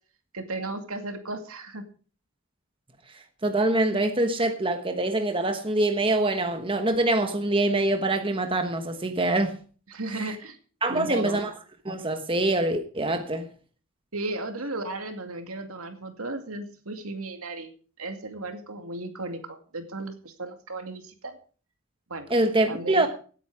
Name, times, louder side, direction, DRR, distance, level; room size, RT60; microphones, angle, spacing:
voice 1, 0.3-1.9 9.9-10.6 10.9-11.4 14.1-17.7 18.0-21.4 22.1-22.3 22.7-23.1, right 2 dB, 75° right, 2.4 m, -35 dB
voice 2, 3.4-9.6 10.1-10.3 10.8-11.5 11.8-13.4 22.3-23.1, right 2 dB, 25° right, 1.2 m, -24 dB
17.0 x 9.1 x 4.9 m
head